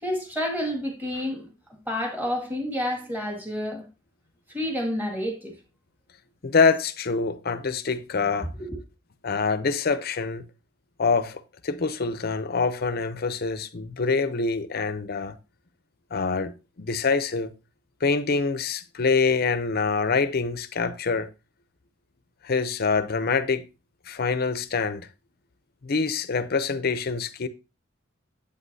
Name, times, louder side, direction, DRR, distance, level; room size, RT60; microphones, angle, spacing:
voice 1, 0.0-3.9 4.5-5.6 8.6-8.8, left 1 dB, 10° right, 2.0 m, -29 dB
voice 2, 6.4-8.5 9.2-10.4 11.0-15.4 16.1-17.5 18.0-21.3 22.4-23.6 24.1-25.1 25.8-27.5, left 4 dB, 50° left, 0.6 m, -25 dB
8.2 x 8.2 x 2.7 m
head